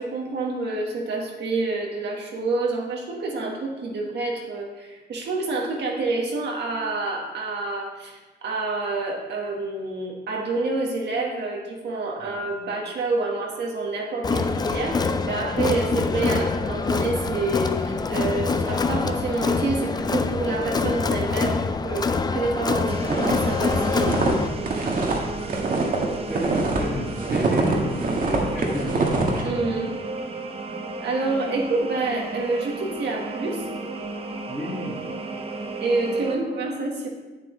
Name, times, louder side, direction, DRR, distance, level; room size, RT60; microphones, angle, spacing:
voice 1, 0.0-24.4 29.4-29.9 31.0-33.7 35.8-37.1, right 3 dB, 70° right, -1 dB, 1.3 m, -28 dB
Crowd, 14.2-24.5, left 4 dB, 25° left, 0.4 m, -25 dB
sound 1, 22.8-36.4, right 3 dB, 35° right, 0.7 m, -34 dB
sound 2, 23.1-26.8 27.1-29.4, right 3 dB, 50° right, 1.3 m, -24 dB
voice 2, 26.3-29.1 34.5-35.0, equal, 5° right, -4 dB, 1.8 m, -32 dB
8.3 x 7.8 x 3.0 m, 1.2 s
wide cardioid pair, 130°, 18 cm